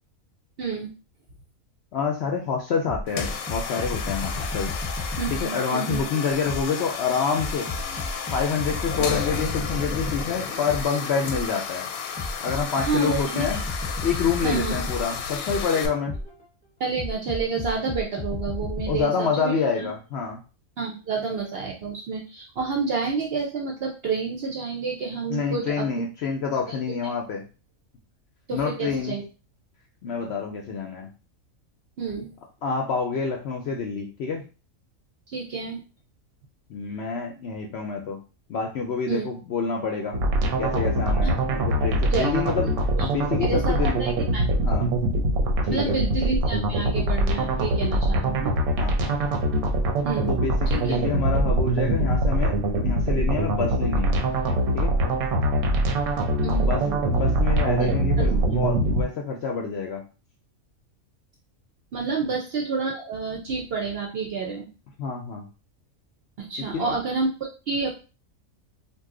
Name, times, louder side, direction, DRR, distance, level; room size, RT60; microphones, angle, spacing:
voice 1, 0.6-0.9 5.2-6.0 12.8-13.6 14.4-14.8 16.8-19.9 20.8-25.9 27.0-27.1 28.5-29.2 32.0-32.3 35.3-35.8 39.1-39.2 41.2-41.3 42.1-42.3 43.0-43.1 43.4-44.5 45.7-48.5 50.0-50.4 50.7-51.0 56.4-57.2 57.8-58.0 61.9-64.7 66.4-68.0, right 4 dB, 60° right, 0 dB, 0.7 m, -29 dB
voice 2, 1.9-4.7 5.3-7.7 8.3-11.9 12.4-13.6 14.0-16.2 18.9-20.4 25.3-27.5 28.5-29.1 30.0-31.1 32.6-34.4 36.7-38.2 38.5-40.2 40.6-42.7 43.0-44.0 44.6-44.9 45.6-46.0 48.8-49.3 50.3-52.6 52.8-54.2 54.7-54.9 56.6-60.0 62.2-62.4 65.0-65.5 66.7-67.0, left 5 dB, 65° left, 1 dB, 0.7 m, -27 dB
sound 1, 2.9-6.8 7.4-11.6 12.2-16.4 17.0-19.0, left 2 dB, 15° right, 0.6 m, -33 dB
sound 2, 3.1-15.9, left 6 dB, 85° left, 1.1 m, -33 dB
sound 3, 40.1-59.0, right 1 dB, 90° right, 1.1 m, -23 dB
2.7 x 2.2 x 3.6 m, 0.34 s
omnidirectional pair, 1.5 m